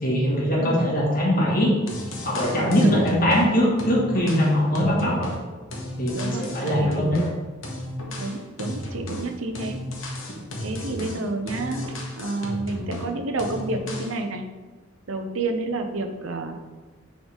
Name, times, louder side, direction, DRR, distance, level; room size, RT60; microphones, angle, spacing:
voice 1, 0.0-1.7 2.2-5.3 6.0-7.3, equal, 45° left, -4 dB, 1.9 m, -21 dB
sound 1, 1.9-3.5 3.8-7.3 7.6-13.1 13.4-14.2, left 1 dB, 70° left, 1.3 m, -34 dB
voice 2, 4.9-5.2 6.1-7.3 8.2-9.8 10.6-14.4 15.1-16.6, right 2 dB, 75° right, 6 dB, 0.7 m, -30 dB
9.6 x 3.8 x 3.6 m, 1.3 s
head